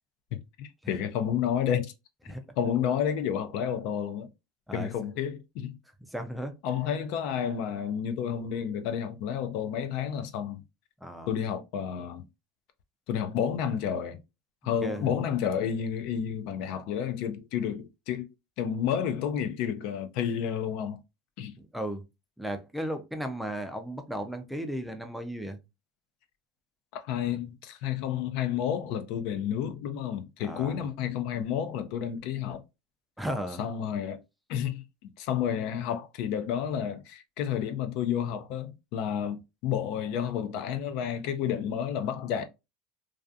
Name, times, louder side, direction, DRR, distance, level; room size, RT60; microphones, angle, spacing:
voice 1, 0.3-1.9 2.6-4.3 4.7-5.8 6.6-10.6 11.3-12.2 13.1-14.2 14.6-18.3 18.6-21.0 21.4-21.6 26.9-32.6 33.6-34.2 34.5-34.8 35.2-42.4, left 8 dB, 65° left, 0.4 m, -30 dB
voice 2, 6.1-6.6 11.0-11.3 14.8-15.1 21.7-22.0 22.4-25.6 30.4-30.8 33.2-33.6, right 1 dB, ahead, 0.4 m, -35 dB
2.4 x 2.3 x 2.5 m
supercardioid pair, 120°, 0 cm